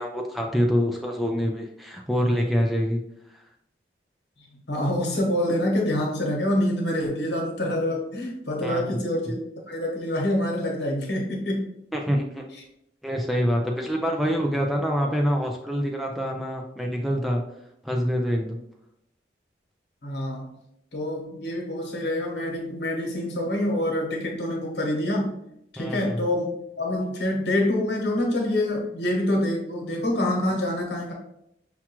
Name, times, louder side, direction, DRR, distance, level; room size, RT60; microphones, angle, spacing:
voice 1, 0.0-3.0 8.6-8.9 11.9-12.4 13.0-17.4 17.8-18.6 25.8-26.2, equal, ahead, 0 dB, 0.3 m, -25 dB
voice 2, 4.7-9.4 9.7-11.6 20.0-20.5 20.9-25.3 25.7-26.5 26.8-31.1, left 1 dB, 75° left, 0 dB, 1.1 m, -26 dB
5.9 x 2.3 x 2.9 m, 0.78 s
head